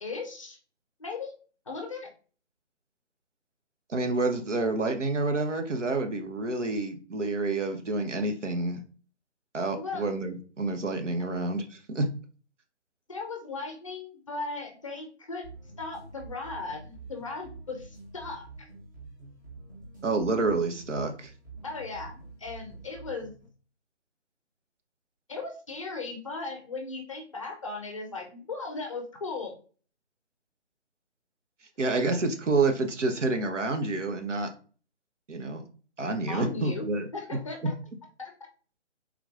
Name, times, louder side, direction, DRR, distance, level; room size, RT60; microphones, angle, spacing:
voice 1, 0.0-0.6 1.0-1.3 1.7-2.1 9.7-10.1 13.1-15.4 15.8-18.7 21.6-23.3 25.3-29.6 36.3-36.9 37.1-37.7 38.2-38.3, left 3 dB, 30° left, 3 dB, 0.5 m, -37 dB
voice 2, 3.9-8.8 9.5-12.1 20.0-21.3 31.8-34.5 35.3-35.6 36.0-37.1, right 3 dB, 85° right, 6 dB, 0.8 m, -28 dB
sound 1, 15.4-23.5, right 3 dB, 15° right, 0.6 m, -47 dB
3.7 x 2.9 x 2.3 m, 0.38 s
figure-of-eight pair, 150°, 35 cm